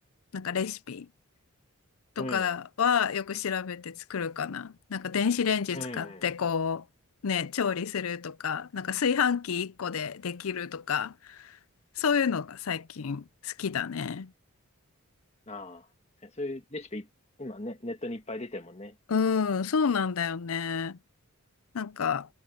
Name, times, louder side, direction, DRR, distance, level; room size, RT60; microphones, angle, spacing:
voice 1, 0.3-1.1 2.2-6.8 7.2-11.6 12.0-14.3 19.1-21.0 21.7-22.3, left 6 dB, 75° left, 0.5 m, -29 dB
voice 2, 2.2-2.5 5.7-6.2 15.5-15.9 16.2-17.1 17.4-19.0, left 1 dB, 30° left, 1.7 m, -38 dB
head